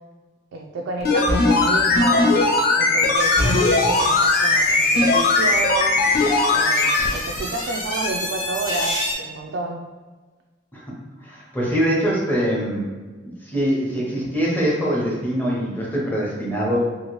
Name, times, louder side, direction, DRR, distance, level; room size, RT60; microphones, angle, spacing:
voice 1, 0.5-2.3 2.8-6.0 6.5-9.8, right 3 dB, 85° right, 0 dB, 0.3 m, -30 dB
sound 1, 1.0-7.1 7.4-7.5, left 3 dB, 55° left, 0.4 m, -18 dB
sound 2, 3.1-9.1, left 1 dB, 80° left, 0.9 m, -30 dB
voice 2, 11.2-12.9 13.2-16.8, equal, 10° left, -5 dB, 0.7 m, -23 dB
2.8 x 2.5 x 3.0 m, 1.3 s
head